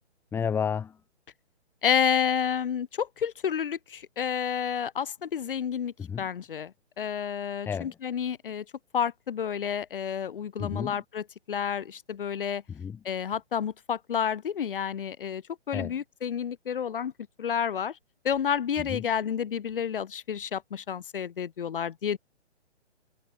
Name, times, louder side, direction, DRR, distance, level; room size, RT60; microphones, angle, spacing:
voice 1, 0.3-1.0 6.0-6.3 7.6-8.0 10.6-11.0 12.7-13.0 15.7-16.0 18.8-19.1, left 7 dB, 5° left, 2.7 m, -32 dB
voice 2, 1.8-6.7 7.0-8.6 8.9-12.6 13.0-15.4 15.7-17.1 17.4-17.9 18.2-22.2, left 8 dB, 50° left, 1.2 m, -30 dB
hypercardioid pair, 165°, 35 cm